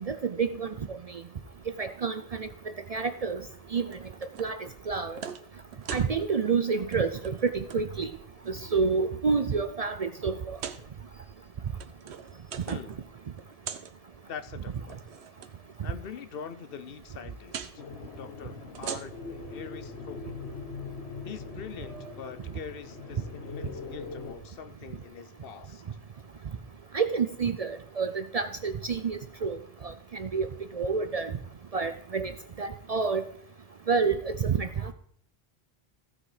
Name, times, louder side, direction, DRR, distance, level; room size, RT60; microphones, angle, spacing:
voice 1, 0.0-1.0 1.8-2.5 2.9-3.4 3.7-3.9 4.4-5.2 5.9-8.1 8.5-10.6 26.9-29.6 30.2-30.5 30.8-31.3 31.7-32.3 32.6-33.2 33.9-34.7, right 5 dB, 50° right, 10 dB, 0.5 m, -28 dB
sound 1, 3.9-4.5 4.9-5.4 5.7-6.1 6.8-7.0 7.2-7.8 8.4-9.0 9.5-9.6 10.5-10.8 11.6-13.0 13.2-13.9 14.8-15.5 17.5-17.7 18.6-19.4, right 7 dB, 90° right, 1.1 m, -40 dB
voice 2, 14.3-15.0 15.8-17.7 18.2-20.3 21.2-25.8, left 7 dB, 65° left, 13 dB, 0.9 m, -43 dB
sound 2, 17.8-24.3, left 4 dB, 85° left, 1.4 m, -41 dB
15.0 x 6.1 x 4.9 m, 0.66 s
omnidirectional pair, 1.1 m